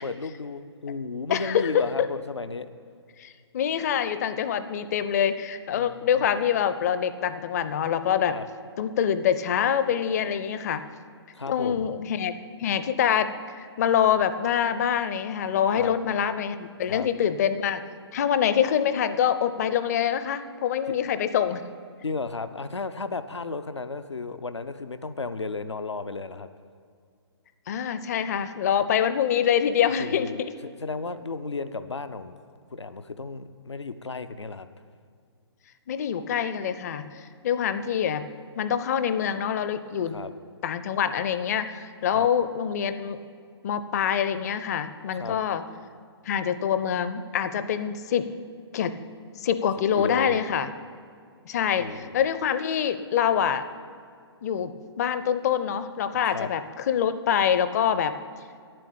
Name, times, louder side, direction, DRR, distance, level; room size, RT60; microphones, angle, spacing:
voice 1, 0.0-2.7 5.7-6.4 8.3-8.5 11.3-11.9 15.8-16.0 16.9-17.1 22.0-26.5 30.0-30.4 30.8-32.4 32.7-34.7 40.1-40.3 42.1-42.3 45.1-45.4 50.0-50.4 51.8-52.0 56.3-56.5, left 4 dB, 85° left, 11 dB, 0.6 m, -33 dB
voice 2, 1.3-1.9 3.2-8.4 8.8-10.9 11.5-12.3 12.6-17.8 18.1-21.6 27.7-30.3 35.9-38.3 38.6-40.2 40.6-43.2 43.6-45.6 46.3-48.3 48.7-49.0 49.4-50.7 51.4-53.6 54.4-58.1, left 8 dB, 35° left, 11 dB, 0.6 m, -25 dB
9.8 x 7.7 x 8.5 m, 2.2 s
figure-of-eight pair, 135°, 14 cm